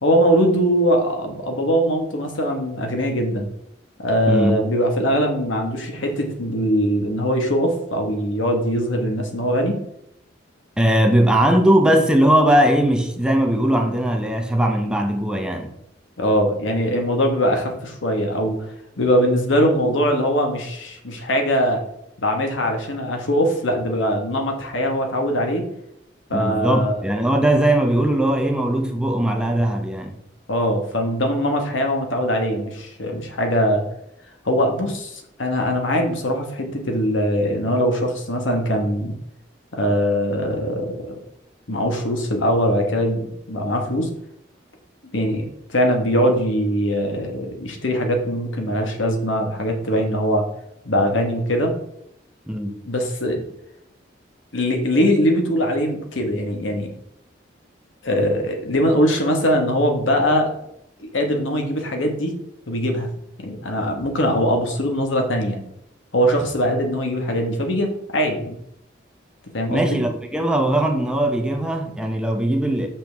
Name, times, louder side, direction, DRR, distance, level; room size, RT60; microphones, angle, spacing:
voice 1, 0.0-3.5 4.0-9.8 16.2-21.8 22.2-25.6 26.3-26.9 30.5-33.8 34.4-39.2 39.7-41.2 41.7-44.1 45.1-50.5 50.8-51.7 52.8-53.4 54.5-56.9 58.0-60.5 61.0-62.3 62.7-63.1 63.4-65.6 66.1-68.6 69.5-70.0, equal, 85° left, 1.4 m, -21 dB
voice 2, 4.3-4.6 10.8-15.7 26.3-30.2 52.5-52.8 69.7-72.9, right 1 dB, 5° right, 0.6 m, -19 dB
6.9 x 6.0 x 3.5 m
head